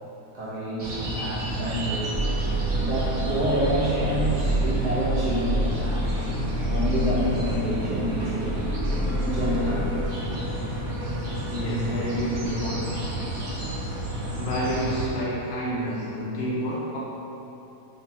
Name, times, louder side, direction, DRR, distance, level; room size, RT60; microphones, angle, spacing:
voice 1, 0.3-2.2 2.7-6.1 6.7-8.8 9.2-10.3, equal, 75° right, -8 dB, 1.5 m, -28 dB
sound 1, 0.8-15.1, right 1 dB, 60° right, 0.9 m, -31 dB
sound 2, 2.1-10.1, right 1 dB, ahead, 0.8 m, -28 dB
voice 2, 11.5-13.0 14.4-17.0, equal, 75° left, -6 dB, 0.6 m, -29 dB
3.7 x 3.4 x 2.8 m, 2.9 s
omnidirectional pair, 1.7 m